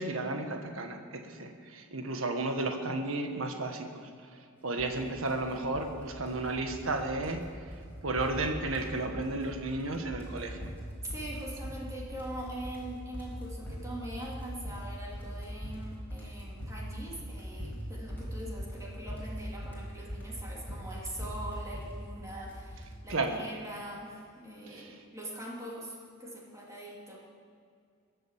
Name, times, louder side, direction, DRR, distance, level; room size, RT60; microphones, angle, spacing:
voice 1, 0.0-4.1 4.6-7.4 8.0-10.7 23.1-23.4 24.7-24.9, right 2 dB, 75° right, 4 dB, 1.5 m, -33 dB
sound 1, 4.8-5.0 5.3-5.9 6.2-6.9 7.2-7.4 7.7-7.9 8.2-8.9 9.2-9.8 10.1-22.9, equal, 10° left, 4.6 m, -41 dB
voice 2, 11.0-27.2, right 1 dB, 15° right, -4 dB, 2.8 m, -42 dB
22.0 x 7.8 x 7.4 m, 2.3 s
head